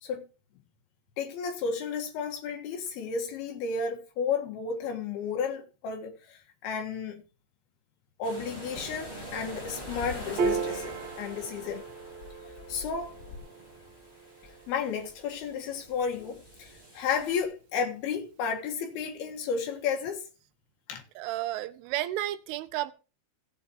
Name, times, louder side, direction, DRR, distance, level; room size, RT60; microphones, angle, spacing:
voice 1, 1.2-7.2 8.2-11.8 12.7-13.1 14.7-20.2 20.9-21.0, left 6 dB, 60° left, 3.1 m, -32 dB
sound 1, 8.2-17.4, right 1 dB, 10° left, 3.8 m, -45 dB
sound 2, 8.4-13.4, left 6 dB, 85° left, 3.3 m, -47 dB
Piano, 10.4-17.0, right 5 dB, 60° right, 1.9 m, -37 dB
voice 2, 21.2-22.9, right 15 dB, 85° right, 3.2 m, -32 dB
16.0 x 8.2 x 3.0 m
omnidirectional pair, 5.7 m